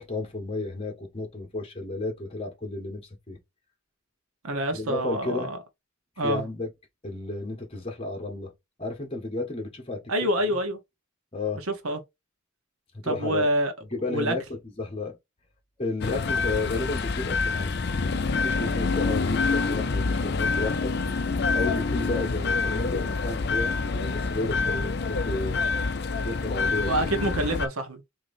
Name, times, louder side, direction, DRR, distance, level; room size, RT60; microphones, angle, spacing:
voice 1, 0.0-3.4 4.7-5.5 6.2-6.7 7.0-8.5 8.8-10.0 10.5-10.6 11.3-11.6 12.9-13.5 13.8-15.2 15.8-17.7 18.3-20.9 21.5-25.6 26.0-26.9, left 2 dB, 25° left, 1.6 m, -32 dB
voice 2, 4.4-5.6 6.2-6.4 10.1-10.8 11.7-12.0 13.0-13.7 14.1-14.3 26.9-28.0, right 1 dB, 85° right, 1.0 m, -26 dB
sound 1, 16.0-27.7, left 4 dB, 50° left, 0.5 m, -27 dB
6.0 x 2.9 x 2.6 m
head